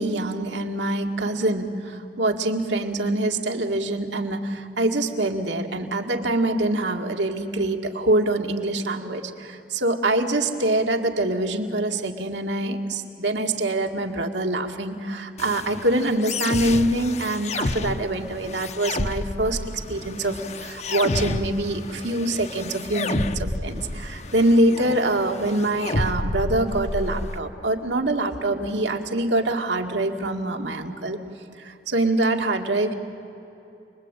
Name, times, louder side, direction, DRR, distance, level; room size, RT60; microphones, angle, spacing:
voice 1, 0.0-31.2 31.6-32.9, right 1 dB, 80° right, 4 dB, 2.2 m, -24 dB
sound 1, 15.4-27.4, left 2 dB, 35° left, 0.8 m, -30 dB
29.0 x 21.5 x 9.1 m, 2.9 s
head